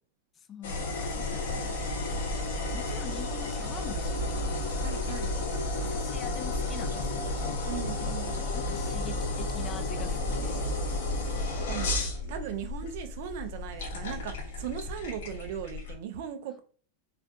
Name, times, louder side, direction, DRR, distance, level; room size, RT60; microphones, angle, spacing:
voice 1, 0.4-1.7 2.7-4.6 5.8-7.6 8.5-10.7, left 7 dB, 25° left, 0.4 m, -44 dB
sound 1, 0.6-16.0, left 2 dB, 55° left, 0.8 m, -32 dB
Insect, 0.8-15.9, left 1 dB, 35° right, 0.9 m, -45 dB
voice 2, 4.8-5.3 7.6-8.4 11.7-16.6, right 9 dB, 50° right, 0.5 m, -38 dB
4.2 x 2.5 x 2.3 m
figure-of-eight pair, 90°, 0 cm